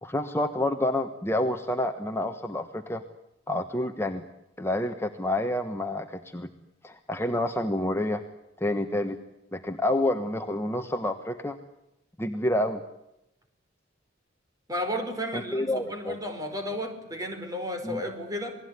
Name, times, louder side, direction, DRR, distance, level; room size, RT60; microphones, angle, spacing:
voice 1, 0.0-3.0 3.5-4.2 4.6-6.5 6.8-8.2 8.6-9.2 9.5-11.6 12.2-12.8 15.3-16.2 17.8-18.0, left 1 dB, 15° left, 5 dB, 1.3 m, -28 dB
voice 2, 14.7-18.6, equal, 20° right, 5 dB, 4.9 m, -33 dB
28.5 x 20.0 x 9.6 m, 0.89 s
head